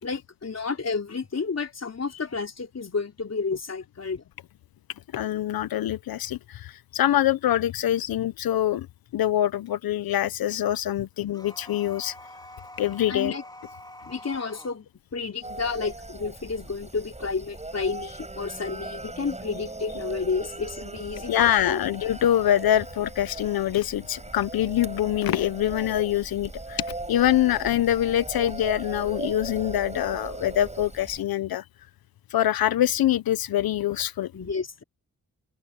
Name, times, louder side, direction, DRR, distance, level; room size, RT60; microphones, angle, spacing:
voice 1, 0.0-4.2 8.1-8.2 11.0-11.1 13.1-13.4 14.0-14.9 15.1-21.9 34.3-34.8, left 4 dB, 45° left, 4.0 m, -31 dB
voice 2, 5.1-8.9 9.1-12.1 12.8-13.3 21.3-31.6 32.3-34.3, left 12 dB, 80° left, 0.7 m, -24 dB
sound 1, 11.3-14.8, left 1 dB, 10° left, 3.9 m, -45 dB
sound 2, 15.4-31.2, right 2 dB, 20° right, 5.9 m, -38 dB
cardioid pair, 85°, 35 cm